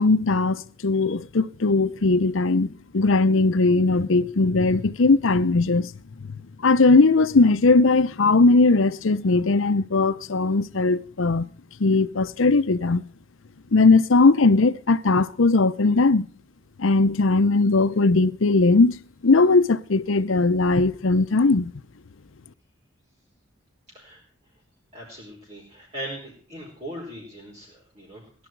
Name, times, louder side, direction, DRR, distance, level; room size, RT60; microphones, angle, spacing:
voice 1, 0.0-5.9 6.3-6.4 6.6-11.5 11.8-13.0 13.7-16.3 16.8-19.0 19.2-21.7, left 3 dB, 80° left, 0.7 m, -19 dB
voice 2, 24.9-28.2, right 1 dB, 30° right, 4.8 m, -39 dB
18.0 x 11.5 x 4.6 m
head